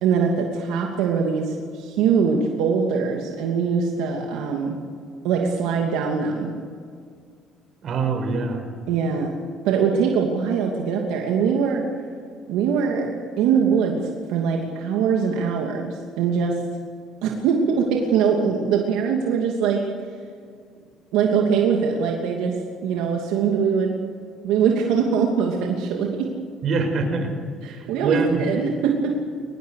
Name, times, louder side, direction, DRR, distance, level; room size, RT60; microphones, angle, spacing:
voice 1, 0.0-4.8 5.2-6.5 8.9-9.3 9.6-11.9 12.5-16.6 17.2-19.9 21.1-24.1 24.4-26.3 27.6-29.1, right 6 dB, 85° right, 0 dB, 2.8 m, -22 dB
voice 2, 7.8-8.7 26.6-27.3 27.7-28.4, right 4 dB, 55° right, 5 dB, 5.7 m, -24 dB
23.5 x 20.5 x 6.7 m, 2.1 s
cardioid pair, 95°, 0 cm